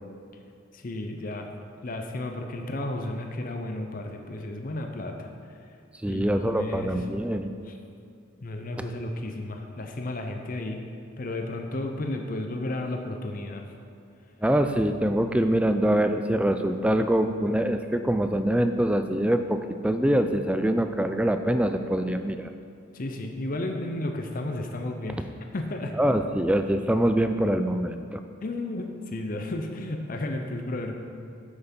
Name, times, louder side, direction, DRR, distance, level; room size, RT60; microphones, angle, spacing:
voice 1, 0.7-1.5 1.8-5.6 6.1-7.0 7.7-7.8 8.4-10.8 11.2-13.7 22.9-25.9 28.4-31.0, left 1 dB, 40° left, 4 dB, 0.6 m, -33 dB
voice 2, 6.0-7.5 14.4-22.5 26.0-28.2, right 1 dB, 5° right, 8 dB, 0.3 m, -24 dB
8.0 x 8.0 x 5.3 m, 2.5 s
head